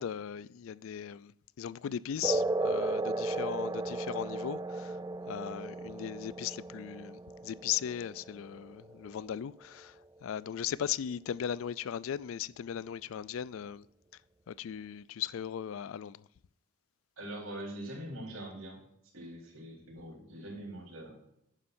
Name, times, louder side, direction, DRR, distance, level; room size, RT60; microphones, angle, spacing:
voice 1, 0.0-1.3 1.6-5.0 5.3-9.9 10.2-13.9 14.5-16.3, left 9 dB, 70° left, 0.3 m, -37 dB
sound 1, 2.2-9.2, right 2 dB, 15° right, 0.3 m, -35 dB
voice 2, 17.2-18.8 19.1-21.3, right 1 dB, 80° right, 3.9 m, -43 dB
11.0 x 9.9 x 2.6 m
head